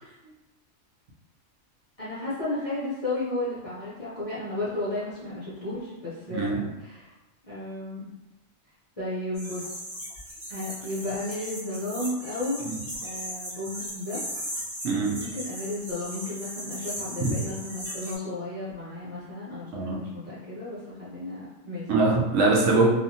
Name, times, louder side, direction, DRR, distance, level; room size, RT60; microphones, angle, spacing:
voice 1, 2.0-7.1 7.4-8.1 9.0-9.7 10.5-12.7 13.0-14.2 15.2-21.9, left 2 dB, 40° left, -11 dB, 0.5 m, -33 dB
sound 1, 9.4-18.2, equal, 40° right, 0.9 m, -37 dB
voice 2, 14.8-15.2 17.2-17.3 19.7-20.0 21.9-22.9, right 3 dB, 70° right, -2 dB, 0.9 m, -22 dB
2.7 x 2.4 x 2.6 m, 1.0 s
omnidirectional pair, 1.4 m